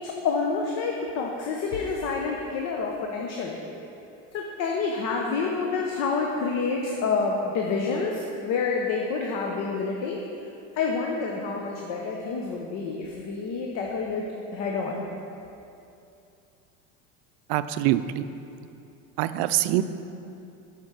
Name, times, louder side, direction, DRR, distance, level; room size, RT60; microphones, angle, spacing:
voice 1, 0.0-3.6 4.3-10.2 10.7-14.3 14.5-15.1, left 4 dB, 55° left, 0 dB, 0.9 m, -28 dB
voice 2, 17.5-18.3 19.2-19.8, right 14 dB, 70° right, 12 dB, 0.5 m, -24 dB
7.9 x 5.1 x 5.8 m, 2.7 s
supercardioid pair, 115°, 32 cm